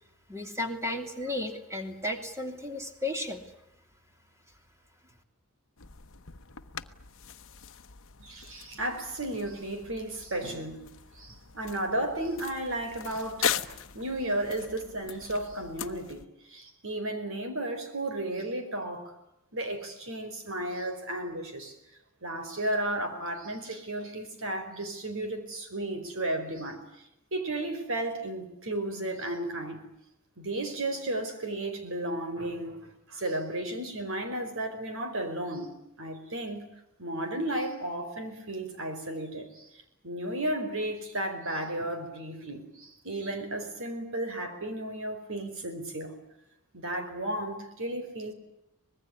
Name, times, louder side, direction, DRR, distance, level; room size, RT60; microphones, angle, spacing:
voice 1, 0.3-3.4, left 1 dB, 15° right, 3.0 m, -34 dB
sound 1, 5.8-16.3, left 8 dB, 60° left, 1.1 m, -39 dB
voice 2, 8.2-10.9 11.1-19.1 19.5-21.7 22.2-29.8 30.4-35.7 36.0-36.6 37.0-46.2 46.7-48.3, right 1 dB, 60° right, 4.8 m, -34 dB
25.0 x 20.5 x 9.7 m
head